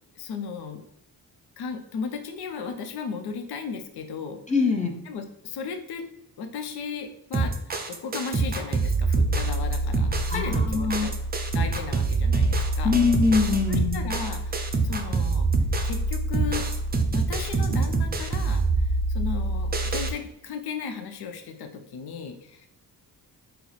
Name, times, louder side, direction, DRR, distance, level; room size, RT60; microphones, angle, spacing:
voice 1, 0.2-0.8 1.6-4.4 5.1-6.0 6.4-7.5 7.9-11.1 11.5-12.9 13.7-15.5 15.8-16.7 17.1-22.7, left 5 dB, 75° left, 5 dB, 0.6 m, -35 dB
voice 2, 4.5-4.9 10.3-11.1 12.8-14.0, left 5 dB, 20° left, 2 dB, 0.6 m, -23 dB
sound 1, 7.3-20.1, right 3 dB, 25° right, 0.5 m, -25 dB
4.3 x 2.0 x 4.0 m, 0.76 s
cardioid pair, 80°, 39 cm